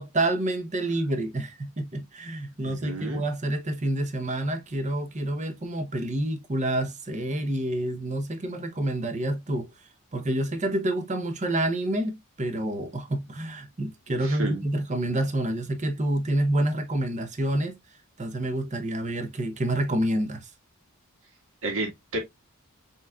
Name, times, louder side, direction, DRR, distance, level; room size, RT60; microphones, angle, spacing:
voice 1, 0.0-9.7 10.1-17.8 18.2-20.5, right 1 dB, 35° right, 0.8 m, -28 dB
voice 2, 2.7-3.2 14.2-14.6 21.6-22.2, right 2 dB, 65° right, 1.7 m, -31 dB
5.7 x 3.1 x 2.3 m
head